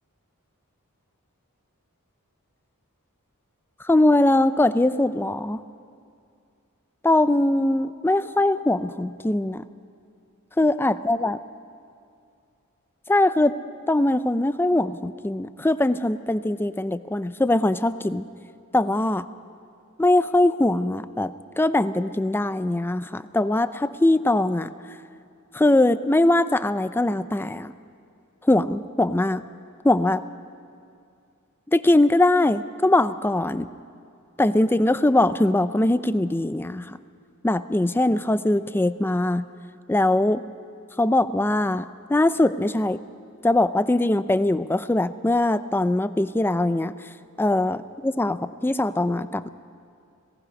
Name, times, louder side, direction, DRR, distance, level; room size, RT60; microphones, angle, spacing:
voice 1, 3.9-5.6 7.0-9.6 10.6-11.4 13.1-13.6 13.9-18.2 18.7-19.3 20.0-24.7 25.5-27.7 28.5-29.4 29.8-30.2 31.7-33.7 34.4-37.0 37.4-39.5 39.9-40.4 41.0-43.0 43.4-46.9 47.4-49.5, left 1 dB, 10° left, 14 dB, 0.4 m, -21 dB
27.0 x 18.0 x 5.3 m, 2.4 s
head